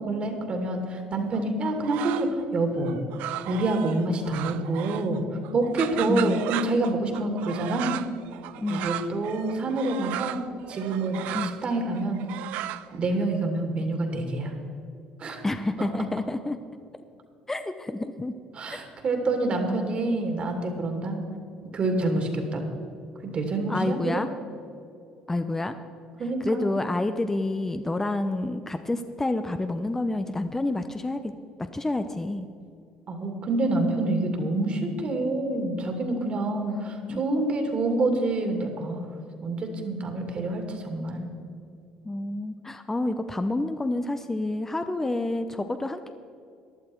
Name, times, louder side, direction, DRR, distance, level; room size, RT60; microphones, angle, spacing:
voice 1, 0.0-3.0 3.2-5.2 5.5-8.0 8.7-12.2 12.9-14.5 15.2-15.4 18.5-21.2 21.7-22.6 23.2-24.2 26.2-26.7 33.1-39.1 39.4-41.3, right 2 dB, 50° right, 4 dB, 2.4 m, -27 dB
sound 1, 1.3-2.4 2.8-5.2 5.4-13.2, right 14 dB, 75° right, 0.4 m, -36 dB
voice 2, 6.0-6.5 8.6-8.9 11.3-11.6 15.4-16.6 17.5-18.3 18.7-18.8 19.7-20.0 21.9-22.2 23.7-24.3 25.3-25.7 26.4-31.3 31.7-32.5 37.1-37.3 42.0-46.1, left 2 dB, 15° left, 9 dB, 0.7 m, -29 dB
14.0 x 11.5 x 4.5 m, 2.5 s
supercardioid pair, 75°, 3 cm